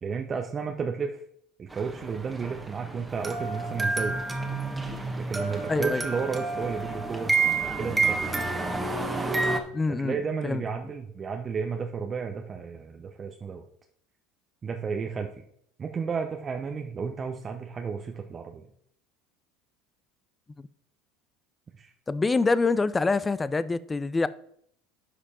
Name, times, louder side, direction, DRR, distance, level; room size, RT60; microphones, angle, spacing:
voice 1, 0.0-1.2 1.6-4.2 5.2-7.3 7.8-8.2 9.9-13.7 14.6-15.4 15.8-18.7 21.7-21.9, right 5 dB, 35° right, 0.8 m, -32 dB
sound 1, 1.7-9.6, right 3 dB, 15° right, 1.4 m, -29 dB
voice 2, 5.7-6.0 9.7-10.6 22.1-24.3, left 3 dB, 20° left, 0.5 m, -25 dB
10.0 x 5.1 x 4.3 m
hypercardioid pair, 85°, 0 cm